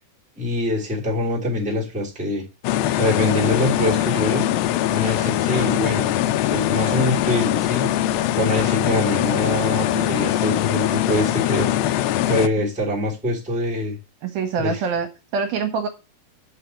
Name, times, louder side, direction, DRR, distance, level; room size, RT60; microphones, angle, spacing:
voice 1, 0.4-2.4 2.9-4.5 4.9-6.1 6.5-7.9 8.4-11.7 12.3-14.0 14.6-14.8, left 1 dB, ahead, 2.1 m, -24 dB
sound 1, 2.6-12.5, left 12 dB, 85° left, 2.0 m, -22 dB
voice 2, 14.2-15.9, right 5 dB, 70° right, 2.6 m, -25 dB
5.8 x 5.7 x 6.9 m
omnidirectional pair, 4.7 m